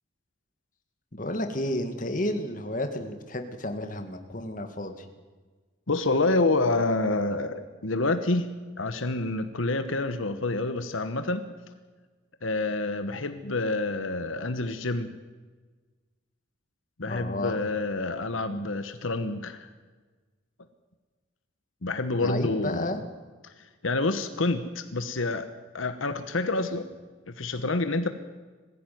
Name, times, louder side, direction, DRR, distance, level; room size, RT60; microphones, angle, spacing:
voice 1, 1.1-5.1 17.1-17.6 22.1-23.0, left 1 dB, 40° left, 6 dB, 2.0 m, -32 dB
voice 2, 5.9-8.5 8.8-11.4 12.4-15.1 17.0-19.7 21.8-23.0 23.8-25.5 25.7-26.9 27.3-28.1, left 2 dB, 80° left, 9 dB, 1.2 m, -28 dB
21.0 x 15.5 x 9.4 m, 1.3 s
head